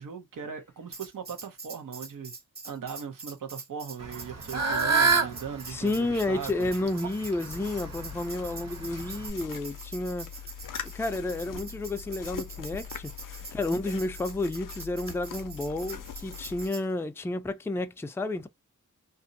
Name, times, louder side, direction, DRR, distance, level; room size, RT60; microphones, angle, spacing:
voice 1, 0.0-2.3 2.6-6.7, right 7 dB, 85° right, 0.8 m, -39 dB
Tambourine, 0.9-16.8, right 4 dB, 30° right, 0.9 m, -44 dB
Fowl / Bird, 4.0-9.3, right 4 dB, 55° right, 1.0 m, -29 dB
voice 2, 5.7-10.3 10.8-18.5, left 2 dB, 10° left, 0.3 m, -31 dB
sound 1, 7.5-16.7, left 9 dB, 90° left, 0.5 m, -42 dB
2.5 x 2.0 x 2.6 m
wide cardioid pair, 90°, 31 cm